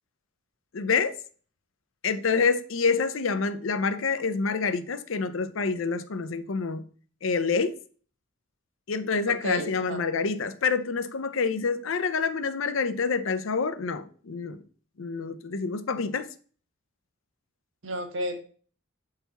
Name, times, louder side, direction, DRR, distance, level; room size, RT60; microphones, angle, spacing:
voice 1, 0.7-1.2 2.0-6.8 7.2-7.7 8.9-14.6 15.0-16.3, left 5 dB, 80° left, 0.6 m, -27 dB
voice 2, 9.3-10.0 17.8-18.4, right 1 dB, 70° right, 1.2 m, -32 dB
7.1 x 4.1 x 4.0 m
head